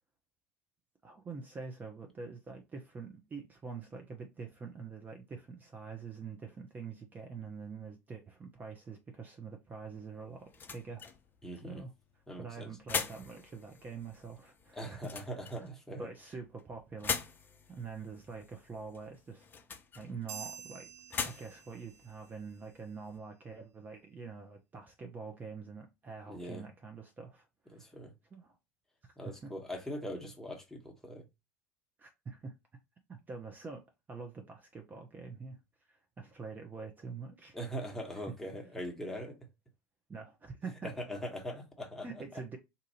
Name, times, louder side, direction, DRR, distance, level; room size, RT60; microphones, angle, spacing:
voice 1, 1.0-11.0 11.6-11.9 12.4-15.7 16.0-17.2 17.7-19.4 19.9-20.9 21.2-27.9 28.3-28.5 29.0-29.5 32.0-32.5 33.1-33.8 34.1-35.6 35.9-37.6 40.1-40.9 42.0-42.6, right 5 dB, 20° right, 0.7 m, -45 dB
sound 1, 9.7-23.2, left 6 dB, 25° left, 0.6 m, -43 dB
voice 2, 11.4-11.8 12.3-12.7 14.7-16.1 26.3-26.6 27.7-28.1 29.2-31.2 37.5-39.4 40.8-42.1, equal, 5° left, 1.1 m, -41 dB
sound 2, 20.3-22.1, right 7 dB, 60° right, 0.8 m, -47 dB
2.7 x 2.5 x 4.1 m
figure-of-eight pair, 75°, 8 cm